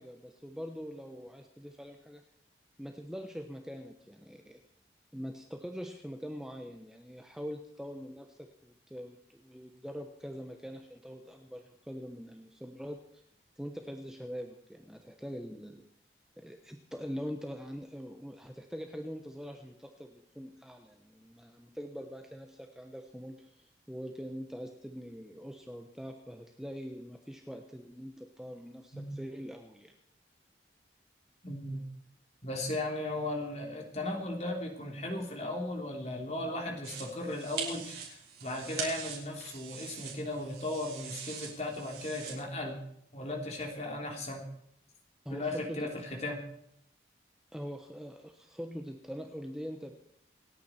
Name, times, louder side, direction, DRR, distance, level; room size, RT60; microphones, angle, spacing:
voice 1, 0.0-2.2 2.8-4.6 5.1-13.2 13.6-15.8 16.4-29.9 45.2-45.9 47.5-50.0, equal, 5° right, 3 dB, 1.1 m, -43 dB
voice 2, 31.4-31.8 32.4-42.8 43.1-44.5 45.3-46.4, left 1 dB, 35° left, 2 dB, 3.2 m, -36 dB
sound 1, 36.8-42.3, right 7 dB, 60° right, 4.9 m, -42 dB
28.0 x 9.5 x 4.4 m, 0.71 s
head